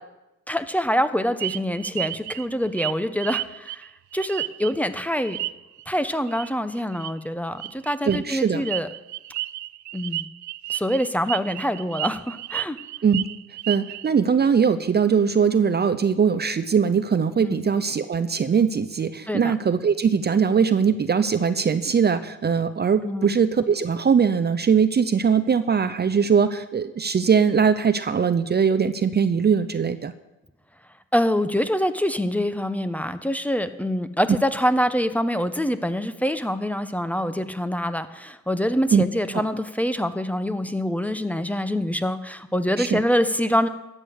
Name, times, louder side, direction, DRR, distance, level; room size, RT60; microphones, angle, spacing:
voice 1, 0.5-3.8 4.1-5.4 5.9-8.9 9.9-10.3 10.7-12.8 17.4-17.6 19.3-19.5 23.0-23.3 31.1-43.7, equal, 5° left, 11 dB, 0.9 m, -25 dB
sound 1, 1.4-4.9 5.2-5.8 6.3-6.5 6.8-7.1 7.6-14.1, right 16 dB, 70° right, 0.5 m, -32 dB
voice 2, 8.1-8.6 13.0-13.3 13.7-30.1 38.9-39.0 39.3-39.4 42.8-43.0, right 6 dB, 35° right, 12 dB, 0.7 m, -21 dB
14.0 x 8.8 x 6.6 m, 0.97 s
cardioid pair, 90°, 30 cm